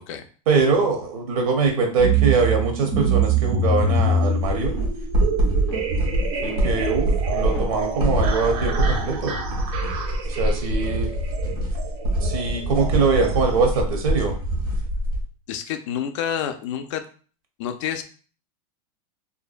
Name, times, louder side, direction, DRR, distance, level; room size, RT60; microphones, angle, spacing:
voice 1, 0.5-4.7 6.4-9.4 10.3-11.1 12.2-14.3, right 4 dB, 70° right, 3 dB, 0.7 m, -23 dB
sound 1, 2.0-13.8, right 4 dB, 35° right, 0.4 m, -26 dB
sound 2, 4.4-15.2, right 1 dB, 90° right, 1.2 m, -24 dB
sound 3, 4.7-5.1 5.4-5.9 6.4-6.6 7.0-7.2 7.5-7.7 8.2-8.3 8.6-8.7, equal, 10° left, 0.6 m, -37 dB
voice 2, 15.5-17.0 17.6-18.0, left 9 dB, 55° left, 8 dB, 0.4 m, -28 dB
2.6 x 2.1 x 2.4 m, 0.40 s
supercardioid pair, 150°, 19 cm